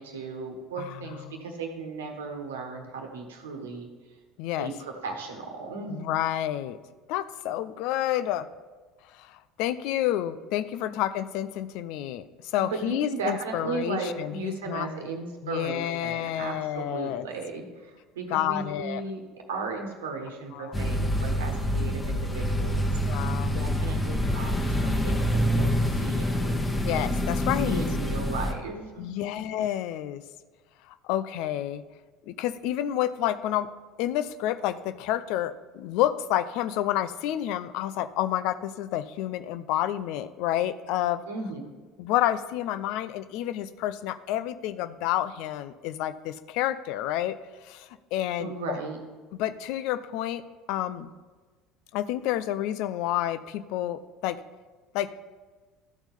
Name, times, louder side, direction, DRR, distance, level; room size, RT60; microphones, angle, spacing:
voice 1, 0.0-3.9 4.6-6.1 10.8-10.9 12.6-19.2 19.5-23.0 23.4-26.6 27.7-29.4 41.3-41.6 48.4-49.0, right 4 dB, 80° right, 3 dB, 1.2 m, -36 dB
voice 2, 4.4-4.7 5.9-6.8 7.1-8.5 9.1-12.3 12.5-14.9 15.4-17.2 18.3-19.0 20.5-20.7 23.1-23.6 26.8-27.8 29.0-30.2 31.0-31.8 32.3-33.7 34.0-41.2 42.0-47.4 47.6-48.8 49.4-50.4 50.7-51.1 51.9-54.4 54.9-55.1, left 12 dB, 60° left, 13 dB, 0.4 m, -29 dB
sound 1, 20.7-28.5, equal, 20° left, 1.1 m, -26 dB
12.5 x 4.4 x 5.3 m, 1.4 s
hypercardioid pair, 65°, 0 cm